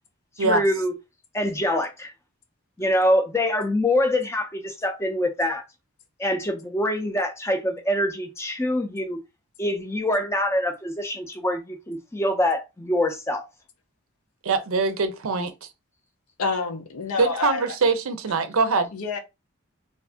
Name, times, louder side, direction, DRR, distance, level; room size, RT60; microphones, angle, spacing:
voice 1, 0.4-0.9 1.3-2.1 2.8-5.6 6.2-9.2 9.6-13.5, left 1 dB, 10° left, 0.4 m, -25 dB
voice 2, 14.4-15.7 17.2-18.9, right 4 dB, 70° right, 0.5 m, -23 dB
voice 3, 16.4-17.6 18.9-19.2, left 4 dB, 85° left, 0.7 m, -27 dB
2.6 x 2.5 x 3.5 m
head